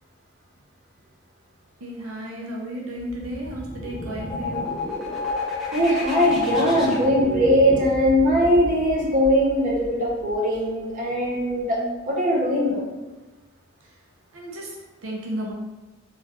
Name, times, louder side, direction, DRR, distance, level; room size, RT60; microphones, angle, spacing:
voice 1, 1.8-4.7 13.8-13.9 14.3-15.5, equal, 80° right, -2 dB, 0.6 m, -33 dB
sound 1, 3.0-10.6, left 2 dB, ahead, 0.6 m, -31 dB
voice 2, 5.7-12.8, equal, 40° right, -3 dB, 0.7 m, -20 dB
3.5 x 2.3 x 2.9 m, 1.2 s
head